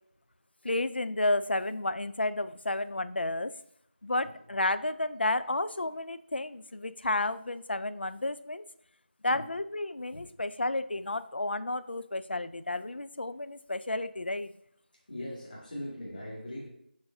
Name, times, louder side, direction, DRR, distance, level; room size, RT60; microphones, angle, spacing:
voice 1, 0.6-3.6 4.0-8.6 9.2-14.5, left 2 dB, 70° left, 13 dB, 0.5 m, -31 dB
voice 2, 15.1-16.7, left 1 dB, 50° left, -5 dB, 2.3 m, -40 dB
7.1 x 6.2 x 2.7 m, 0.75 s
figure-of-eight pair, 175°, 6 cm